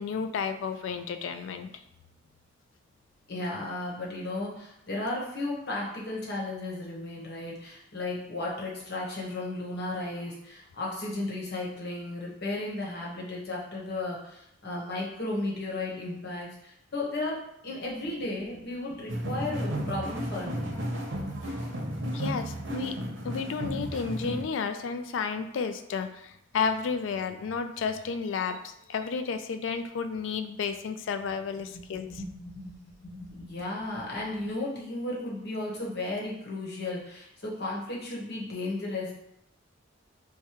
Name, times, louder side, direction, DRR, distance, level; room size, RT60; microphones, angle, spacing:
voice 1, 0.0-1.8 22.1-23.0 23.2-32.1, left 5 dB, 75° left, 8 dB, 0.3 m, -32 dB
voice 2, 3.3-20.7 31.7-31.8 32.1-39.1, left 2 dB, 60° left, -4 dB, 1.0 m, -34 dB
sound 1, 19.1-24.4, equal, 80° right, 0.7 m, -33 dB
4.8 x 2.2 x 2.9 m, 0.78 s
head